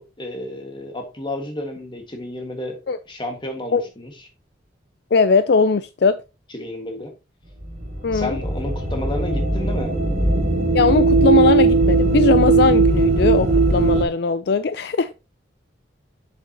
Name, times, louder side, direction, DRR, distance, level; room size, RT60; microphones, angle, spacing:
voice 1, 0.0-2.8 3.0-4.2 6.5-7.1 8.1-9.9, left 1 dB, 25° left, 1.6 m, -31 dB
voice 2, 5.1-6.2 8.0-8.4 10.7-15.2, left 4 dB, 55° left, 0.4 m, -19 dB
sound 1, 7.6-14.1, right 3 dB, 40° right, 2.6 m, -18 dB
7.3 x 6.9 x 2.8 m
head